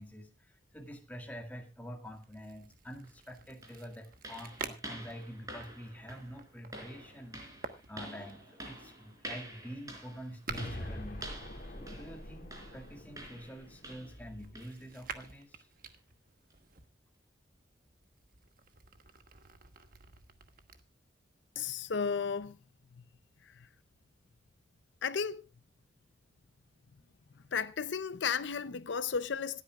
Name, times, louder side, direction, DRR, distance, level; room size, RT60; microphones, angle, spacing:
voice 1, 0.0-7.6 7.9-15.7, equal, 10° left, 1.8 m, -47 dB
sound 1, 2.0-12.0 12.7-16.9 17.5-20.8, right 5 dB, 50° right, 1.2 m, -50 dB
sound 2, 3.0-3.1 3.6-14.3 14.6-14.8 15.2-15.4 15.9-16.0 16.5-16.6, right 1 dB, 20° right, 4.1 m, -48 dB
sound 3, 10.5-14.6, left 1 dB, 45° left, 2.2 m, -45 dB
voice 2, 21.6-22.6 23.0-23.1 23.4-23.7 25.0-25.4 27.5-29.6, left 6 dB, 75° left, 0.6 m, -34 dB
26.0 x 9.2 x 2.4 m
head